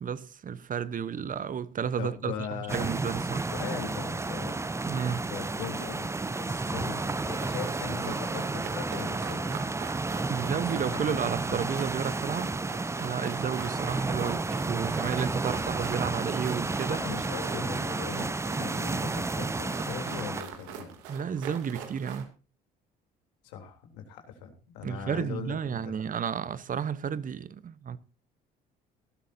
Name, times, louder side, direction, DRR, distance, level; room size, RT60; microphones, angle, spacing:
voice 1, 0.0-3.5 4.9-5.3 10.3-12.5 13.0-17.0 21.1-22.3 24.8-28.0, right 7 dB, 45° right, 1.0 m, -32 dB
voice 2, 2.0-2.9 3.5-4.6 5.0-9.6 10.6-11.2 11.5-11.6 14.9-15.0 16.8-18.3 18.6-20.9 23.4-25.8, left 7 dB, 85° left, 3.5 m, -40 dB
sound 1, 2.7-20.4, right 3 dB, 15° right, 0.6 m, -32 dB
sound 2, 7.1-22.2, right 8 dB, 80° right, 2.9 m, -43 dB
19.0 x 12.5 x 2.8 m
supercardioid pair, 65°, 20 cm